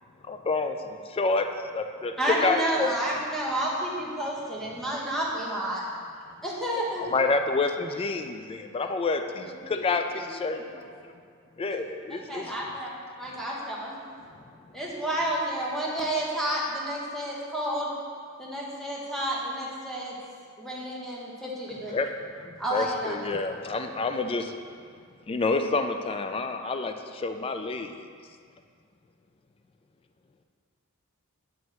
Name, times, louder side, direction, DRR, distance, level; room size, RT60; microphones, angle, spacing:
voice 1, 0.3-1.5 1.7-2.9 7.0-10.8 11.6-12.5 21.9-24.5 25.3-27.9, left 3 dB, 25° left, 7 dB, 0.3 m, -28 dB
voice 2, 2.2-5.8 6.4-7.0 12.1-12.9 13.2-13.9 14.7-17.9 18.4-20.1 20.6-21.9 22.6-23.2, right 1 dB, ahead, -5 dB, 1.2 m, -30 dB
voice 3, 9.3-10.0 10.3-10.9, left 3 dB, 55° left, -1 dB, 1.1 m, -46 dB
9.2 x 3.1 x 6.2 m, 2.1 s
head